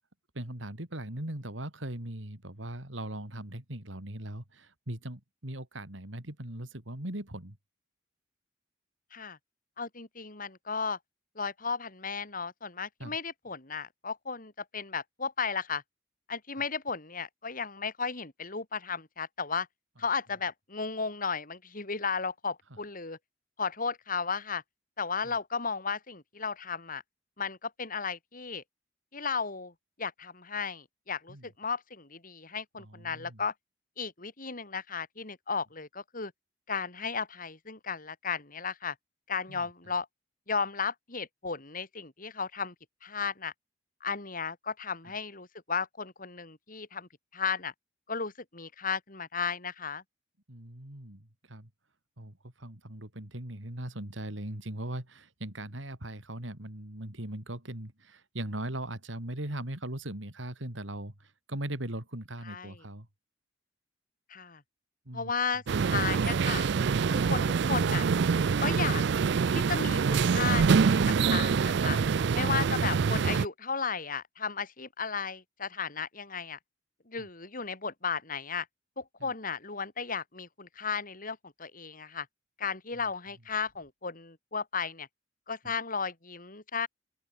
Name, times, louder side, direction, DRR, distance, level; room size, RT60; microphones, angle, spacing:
voice 1, 0.3-7.6 13.0-13.2 25.2-25.4 31.3-31.5 32.8-33.4 39.5-39.7 50.5-51.7 52.2-63.1 65.1-65.3 77.2-77.3 79.2-79.3 82.9-83.0, right 1 dB, 85° right, 3.9 m, -39 dB
voice 2, 9.8-11.0 11.4-15.8 16.3-19.7 20.0-23.2 23.6-24.6 25.0-27.0 27.4-28.6 29.1-29.7 30.0-33.5 34.0-36.3 36.7-38.9 39.3-40.1 40.5-42.7 43.0-43.5 44.0-47.7 48.1-50.0 62.5-62.8 64.3-64.6 65.1-66.7 67.1-68.1 68.6-69.0 69.5-72.0 72.3-76.6 77.1-78.7 79.0-82.3 82.6-85.1 85.5-86.9, left 5 dB, 45° left, 4.3 m, -34 dB
sound 1, 65.7-73.5, right 5 dB, 65° right, 0.4 m, -25 dB
open air
head